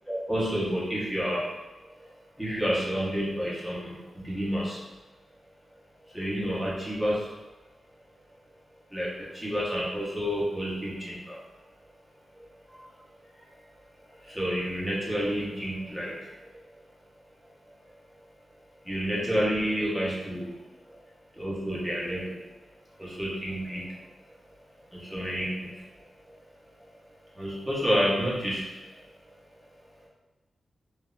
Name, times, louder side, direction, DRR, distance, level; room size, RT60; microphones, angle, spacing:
voice 1, 0.1-1.5 1.8-2.1 2.4-4.9 6.1-7.3 8.9-11.4 12.3-12.9 13.3-13.6 14.1-16.6 18.8-20.9 21.3-22.5 23.0-24.0 24.9-26.5 26.8-26.9 27.3-29.3 30.0-30.1, equal, ahead, -7 dB, 1.3 m, -30 dB
3.7 x 2.1 x 2.6 m, 1.1 s
cardioid pair, 60°, 0 cm